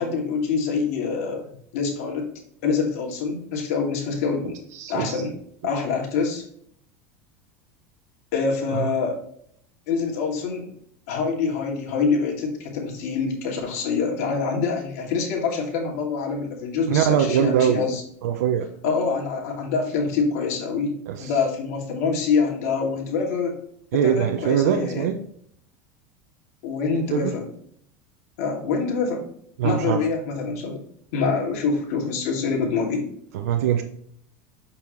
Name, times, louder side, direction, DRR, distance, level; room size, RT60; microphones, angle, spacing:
voice 1, 0.0-1.5 1.7-2.3 2.6-4.5 4.9-5.3 5.6-6.4 8.3-9.2 9.9-10.7 11.1-18.0 18.8-20.9 21.2-23.6 24.0-25.1 26.6-27.5 28.4-29.2 29.6-30.8 31.1-33.1, left 5 dB, 75° left, 0 dB, 2.6 m, -25 dB
voice 2, 4.7-5.2 8.7-8.9 16.9-17.8 18.2-18.7 21.1-21.3 23.9-25.2 27.1-27.3 29.6-30.0 33.3-33.8, right 9 dB, 85° right, 5 dB, 0.8 m, -22 dB
6.8 x 5.7 x 3.1 m, 0.64 s
supercardioid pair, 120°, 8 cm